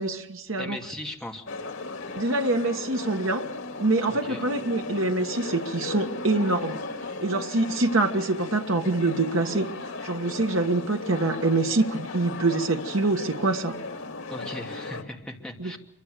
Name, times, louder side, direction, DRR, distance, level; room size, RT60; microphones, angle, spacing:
voice 1, 0.0-0.8 2.2-3.4 3.8-6.8 7.2-9.7 10.0-13.8 15.6-15.8, right 2 dB, 80° right, 4 dB, 1.6 m, -25 dB
voice 2, 0.6-1.4 4.1-4.4 14.3-15.8, left 1 dB, 5° left, 0 dB, 2.8 m, -38 dB
sound 1, 1.5-15.0, left 3 dB, 85° left, 2.4 m, -36 dB
25.5 x 24.0 x 6.8 m, 0.83 s
head